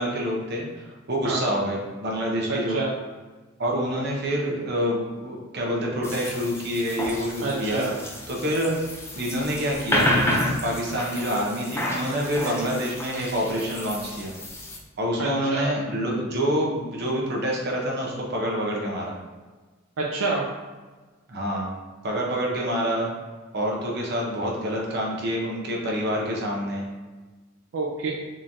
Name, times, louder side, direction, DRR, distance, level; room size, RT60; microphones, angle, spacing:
voice 1, 0.0-2.8 3.6-7.8 8.3-8.7 9.1-10.2 10.6-14.3 15.0-19.2 21.3-21.7 22.0-23.1 23.5-26.8, equal, 55° right, -2 dB, 0.8 m, -27 dB
sound 1, 6.0-14.8, left 1 dB, 15° left, 0.5 m, -30 dB
voice 2, 7.4-7.9 12.4-12.6 15.2-15.7 20.0-20.4 27.7-28.1, right 3 dB, 90° right, -3 dB, 0.5 m, -27 dB
3.7 x 3.1 x 2.7 m, 1.3 s
head